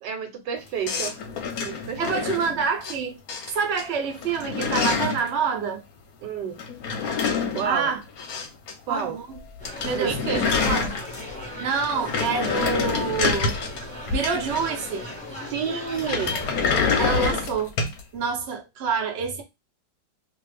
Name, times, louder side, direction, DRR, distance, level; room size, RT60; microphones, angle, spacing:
voice 1, 0.0-1.2 1.6-2.5 6.2-6.6 7.5-7.9 8.9-9.2 9.9-10.4 15.5-16.4, right 7 dB, 75° right, 1.3 m, -30 dB
sound 1, 0.9-3.0 3.3-3.8 4.1-5.3 6.6-8.7 9.0-9.1 9.4-9.5 9.6-11.4 11.8-14.9 16.0-18.0, left 5 dB, 65° left, 1.0 m, -27 dB
voice 2, 2.0-3.2 3.5-5.8 7.6-8.0 8.9-9.4 9.8-10.9 11.6-13.6 14.1-15.1 17.0-17.7 18.1-19.4, right 5 dB, 55° right, 0.7 m, -27 dB
sound 2, 9.6-17.3, left 1 dB, 10° left, 0.4 m, -37 dB
2.8 x 2.5 x 3.2 m
omnidirectional pair, 2.0 m